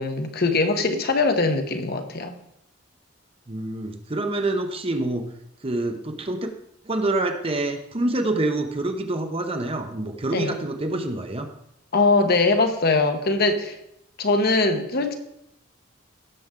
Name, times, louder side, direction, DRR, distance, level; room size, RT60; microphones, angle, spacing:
voice 1, 0.0-2.4 10.3-10.5 11.9-13.8 14.2-15.2, left 3 dB, 50° left, 6 dB, 1.1 m, -21 dB
voice 2, 3.5-5.3 5.6-6.5 6.9-11.5, right 2 dB, 30° right, 6 dB, 0.9 m, -26 dB
16.5 x 6.9 x 3.8 m, 0.80 s
head